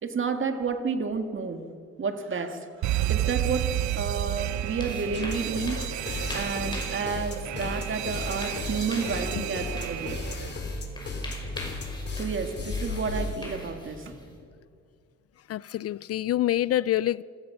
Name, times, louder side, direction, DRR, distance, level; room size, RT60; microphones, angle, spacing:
voice 1, 0.0-1.7 2.0-10.2 12.2-14.2, right 5 dB, 40° right, 2.1 m, -31 dB
Alarm, 2.8-10.5, right 15 dB, 70° right, 0.5 m, -31 dB
sound 1, 4.2-14.4, left 1 dB, 15° left, 5.7 m, -43 dB
sound 2, 5.1-13.5, left 2 dB, 35° left, 3.3 m, -34 dB
voice 2, 15.5-17.2, left 13 dB, 55° left, 0.4 m, -26 dB
27.5 x 17.5 x 5.9 m
cardioid pair, 90°, 30 cm